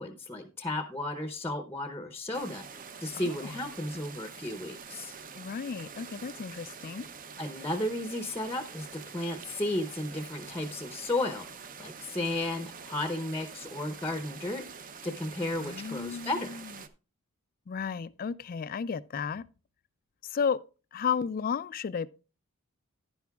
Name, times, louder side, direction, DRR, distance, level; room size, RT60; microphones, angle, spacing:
voice 1, 0.0-5.1 7.4-16.6, left 1 dB, 10° left, 0.7 m, -34 dB
sound 1, 2.3-16.9, right 6 dB, 40° right, 0.6 m, -46 dB
voice 2, 3.1-3.5 5.3-7.1 15.6-16.7 17.7-19.4 20.2-20.6 20.9-22.1, left 6 dB, 40° left, 0.3 m, -33 dB
10.5 x 10.5 x 2.3 m
head